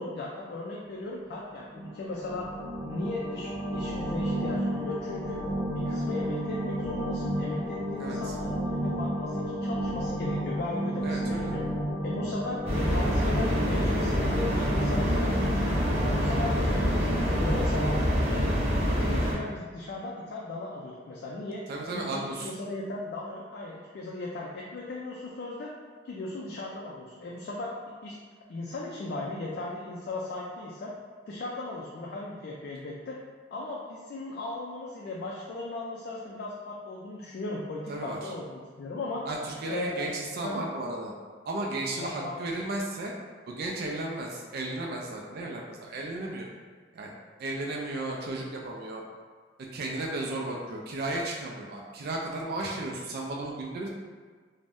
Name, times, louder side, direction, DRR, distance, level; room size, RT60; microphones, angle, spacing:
voice 1, 0.0-2.5 2.9-5.4 5.7-11.6 12.0-15.8 16.1-17.9 18.3-21.6 21.9-25.7 26.0-28.2 28.5-30.9 31.3-33.2 33.5-39.2 39.7-40.1 40.4-40.6 42.0-42.3, left 2 dB, 55° left, -3 dB, 0.3 m, -37 dB
sound 1, 1.6-18.0, equal, 5° left, 0.6 m, -32 dB
voice 2, 8.0-8.3 11.0-11.5 21.7-22.5 37.9-38.3 39.3-41.1 41.5-43.1 43.5-46.5 46.9-47.1 47.4-49.0 49.7-53.9, right 2 dB, 55° right, -1 dB, 0.3 m, -34 dB
sound 2, 12.6-19.3, equal, 40° right, 0.9 m, -26 dB
2.5 x 2.1 x 3.4 m, 1.5 s
head